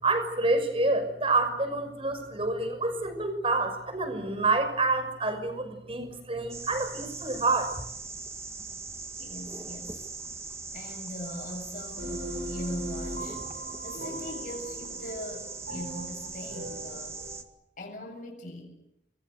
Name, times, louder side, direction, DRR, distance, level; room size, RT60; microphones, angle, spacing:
voice 1, 0.0-7.8, right 3 dB, 30° right, 6.1 m, -28 dB
sound 1, 6.5-17.4, right 4 dB, 15° right, 1.9 m, -40 dB
voice 2, 9.2-10.1 10.7-13.4 13.8-17.2 17.8-18.7, left 1 dB, 50° left, 7.7 m, -40 dB
sound 2, 12.0-17.4, equal, 75° right, 6.4 m, -39 dB
29.5 x 22.0 x 8.1 m
head